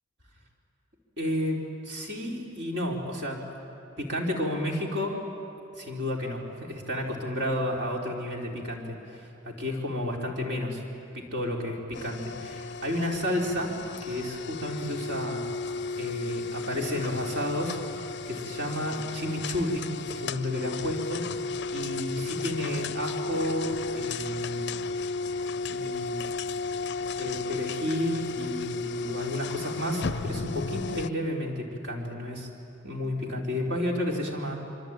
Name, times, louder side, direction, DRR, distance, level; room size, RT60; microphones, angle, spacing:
voice 1, 1.2-3.4 4.0-5.2 5.8-10.8 11.1-13.8 14.0-15.5 16.0-17.8 18.3-24.8 25.7-26.2 27.1-32.5 32.8-34.6, left 1 dB, 60° right, -1 dB, 4.1 m, -31 dB
sound 1, 11.9-31.1, left 4 dB, 55° left, 0.5 m, -34 dB
25.5 x 24.5 x 9.1 m, 2.7 s
head